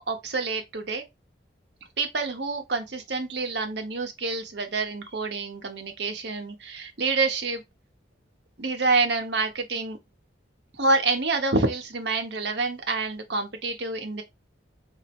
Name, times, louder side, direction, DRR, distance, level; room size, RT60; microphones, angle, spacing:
voice 1, 0.1-1.0 2.0-7.6 8.6-10.0 10.8-14.2, right 3 dB, 65° right, 0.9 m, -27 dB
4.1 x 2.6 x 2.9 m
head